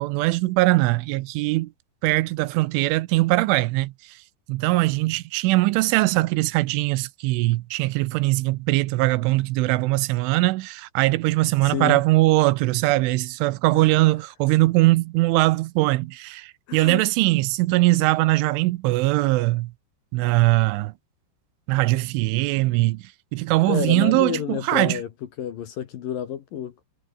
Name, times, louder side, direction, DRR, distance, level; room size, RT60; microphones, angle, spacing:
voice 1, 0.0-1.7 2.0-3.9 4.5-19.7 20.1-20.9 21.7-23.0 23.3-25.0, right 20 dB, 90° right, 3.2 m, -21 dB
voice 2, 11.6-12.0 13.7-13.9 16.7-17.0 23.7-25.1 25.4-26.8, left 9 dB, 60° left, 2.6 m, -29 dB
omnidirectional pair, 5.6 m